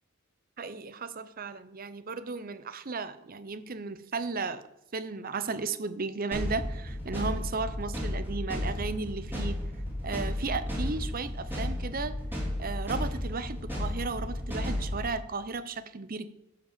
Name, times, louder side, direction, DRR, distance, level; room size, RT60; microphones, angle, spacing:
voice 1, 0.6-4.6 4.9-9.6 10.0-12.2 12.6-16.3, right 4 dB, 45° right, 12 dB, 0.7 m, -35 dB
sound 1, 6.3-15.1, left 1 dB, 10° right, 2.9 m, -33 dB
10.5 x 5.4 x 7.3 m, 0.85 s
head